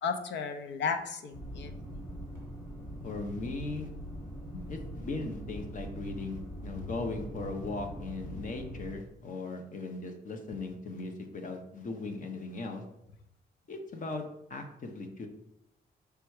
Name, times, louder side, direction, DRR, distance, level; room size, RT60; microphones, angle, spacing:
voice 1, 0.0-2.0 4.5-4.6, left 5 dB, 75° left, 7 dB, 0.7 m, -34 dB
sound 1, 1.3-9.0, equal, 15° left, 2.1 m, -42 dB
voice 2, 3.0-3.9 4.7-12.8 13.7-14.2 14.5-15.3, left 3 dB, 45° left, 5 dB, 0.9 m, -38 dB
5.8 x 3.4 x 4.9 m, 0.81 s
wide cardioid pair, 150°, 18 cm